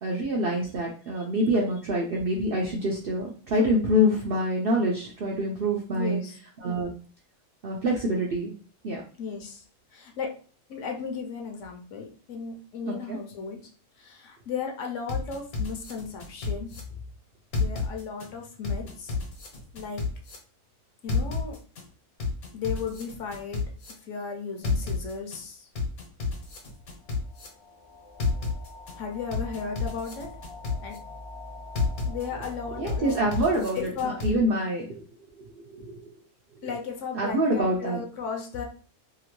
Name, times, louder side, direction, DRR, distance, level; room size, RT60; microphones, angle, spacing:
voice 1, 0.0-6.2 6.6-6.9 7.6-8.5 8.8-9.0 12.9-13.2 32.8-33.8 34.0-35.0 35.4-36.1 37.1-38.0, equal, 65° right, -2 dB, 0.5 m, -26 dB
voice 2, 5.9-6.4 9.2-9.7 9.9-10.3 10.7-13.6 14.0-17.0 17.6-19.2 19.7-20.0 21.0-21.6 22.5-23.6 24.0-25.7 29.0-30.3 30.8-31.0 32.1-33.2 33.7-34.2 36.6-38.6, left 6 dB, 70° left, 2 dB, 0.9 m, -35 dB
sound 1, 15.1-16.8 17.5-18.3 18.6-20.4 21.1-21.8 22.2-23.9 24.6-25.4 25.8-27.5 28.2-28.9 29.3-31.0 31.8-32.5 32.9-34.3, left 4 dB, 85° left, 1.3 m, -30 dB
sound 2, 26.7-33.4, left 2 dB, 30° left, 0.6 m, -44 dB
2.9 x 2.5 x 2.9 m, 0.41 s
omnidirectional pair, 1.5 m